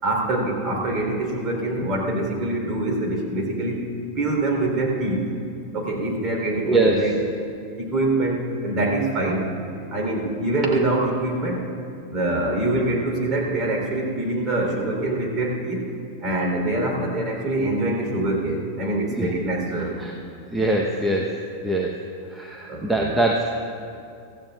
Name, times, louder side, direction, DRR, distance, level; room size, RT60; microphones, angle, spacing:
voice 1, 0.0-3.9 4.1-5.3 5.7-7.2 7.8-9.5 9.9-11.6 12.1-15.8 16.2-19.9 22.7-23.1, right 2 dB, 25° right, 0 dB, 3.5 m, -24 dB
voice 2, 6.7-7.1 19.2-19.3 20.0-20.1 20.5-21.4 21.6-21.9 22.3-23.5, right 2 dB, 5° right, -1 dB, 0.9 m, -22 dB
24.5 x 15.0 x 2.4 m, 2.5 s
figure-of-eight pair, 90°, 0 cm